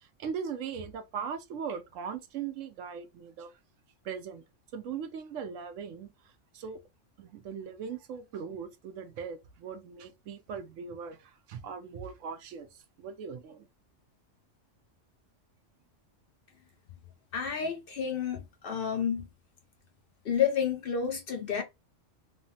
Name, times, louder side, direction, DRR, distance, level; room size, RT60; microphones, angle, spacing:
voice 1, 0.0-3.5 4.0-4.4 4.7-6.8 7.2-13.7, right 6 dB, 80° right, 1.0 m, -39 dB
voice 2, 17.3-19.3 20.2-21.6, left 7 dB, 60° left, 0.7 m, -30 dB
3.2 x 2.0 x 2.7 m
omnidirectional pair, 1.3 m